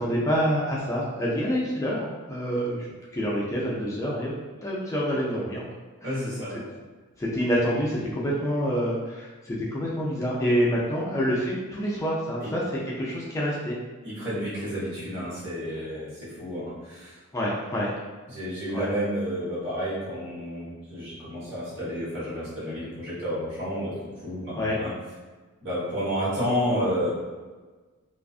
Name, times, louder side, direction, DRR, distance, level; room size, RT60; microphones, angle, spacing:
voice 1, 0.0-2.9 3.1-4.3 4.6-5.7 6.0-6.2 7.2-13.8 15.7-15.9 17.3-17.9 18.7-18.9 24.5-24.8, equal, 15° left, -5 dB, 0.3 m, -27 dB
voice 2, 6.0-6.6 12.4-12.5 14.0-17.1 18.3-24.9 25.6-27.1, equal, 60° right, -9 dB, 1.2 m, -30 dB
2.4 x 2.3 x 2.4 m, 1.3 s
head